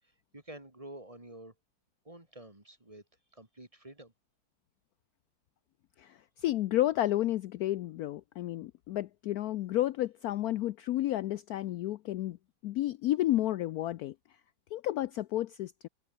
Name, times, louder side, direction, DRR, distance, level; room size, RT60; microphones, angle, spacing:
voice 1, 0.3-1.5 2.0-3.0 3.3-4.1, right 1 dB, 15° right, 2.9 m, -49 dB
voice 2, 6.0-12.4 12.6-14.1 14.7-15.9, left 14 dB, 80° left, 0.8 m, -31 dB
omnidirectional pair, 2.2 m